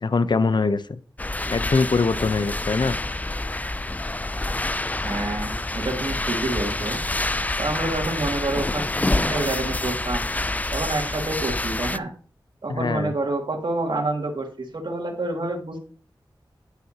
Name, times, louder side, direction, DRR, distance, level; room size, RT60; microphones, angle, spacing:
voice 1, 0.0-1.0 1.5-3.0 12.7-13.1, left 4 dB, 60° left, 13 dB, 0.6 m, -23 dB
sound 1, 1.2-12.0, left 2 dB, 20° left, 0.4 m, -27 dB
voice 2, 5.0-7.0 7.6-10.3 10.7-12.1 12.6-15.8, right 2 dB, 65° right, 1 dB, 2.2 m, -28 dB
9.4 x 9.3 x 2.8 m, 0.40 s
wide cardioid pair, 60°, 9 cm